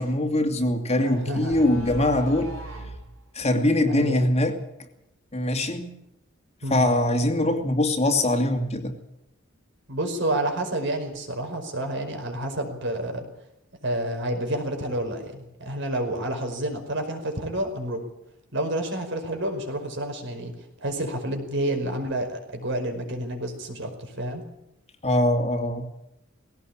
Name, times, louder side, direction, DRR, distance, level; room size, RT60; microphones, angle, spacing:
voice 1, 0.0-2.5 3.3-4.6 5.3-6.0 6.7-8.9 25.0-25.9, left 1 dB, 30° left, 5 dB, 2.5 m, -22 dB
sound 1, 0.9-3.0, equal, 90° right, 7.2 m, -38 dB
voice 2, 1.0-1.6 3.9-4.2 6.6-6.9 9.9-13.3 13.8-18.0 18.5-20.5 20.8-24.4, right 1 dB, 60° right, 5 dB, 5.2 m, -29 dB
19.5 x 17.5 x 8.8 m, 0.84 s
head